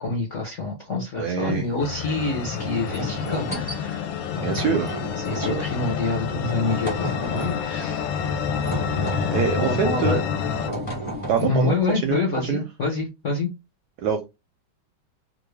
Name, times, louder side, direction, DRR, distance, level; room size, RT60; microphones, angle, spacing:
voice 1, 0.0-4.7 5.2-8.1 9.6-10.2 11.4-13.5, left 3 dB, 60° left, 0 dB, 0.8 m, -27 dB
voice 2, 1.1-1.6 4.4-5.0 5.3-5.6 9.3-10.2 11.3-11.8 12.0-12.2 12.5-12.6 14.0-14.3, right 6 dB, 70° right, 4 dB, 0.9 m, -24 dB
sound 1, 1.5-1.8 2.5-3.8 4.5-5.8 6.5-7.7 8.5-9.6 10.4-11.8, equal, 25° left, 0.8 m, -32 dB
sound 2, 1.8-10.7, left 6 dB, 75° left, 1.2 m, -28 dB
3.0 x 2.5 x 3.1 m, 0.23 s
omnidirectional pair, 2.2 m